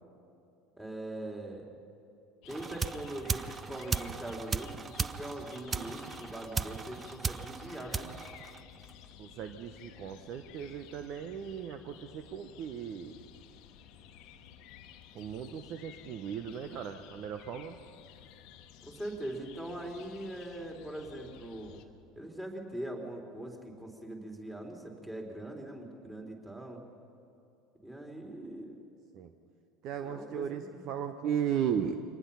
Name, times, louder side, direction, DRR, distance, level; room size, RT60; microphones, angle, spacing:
voice 1, 0.8-1.6 2.5-8.1 18.8-21.7 22.2-26.8 27.8-28.8 30.0-30.8, right 1 dB, 10° right, 0 dB, 3.9 m, -41 dB
sound 1, 2.4-21.9, left 9 dB, 55° left, 1.2 m, -54 dB
sound 2, 2.5-9.0, right 5 dB, 25° right, 0.6 m, -37 dB
voice 2, 9.2-13.2 15.1-17.8 29.1-29.3 29.8-32.0, right 8 dB, 50° right, 9 dB, 0.9 m, -36 dB
24.0 x 19.0 x 5.7 m, 2.6 s
figure-of-eight pair, 70°, 0 cm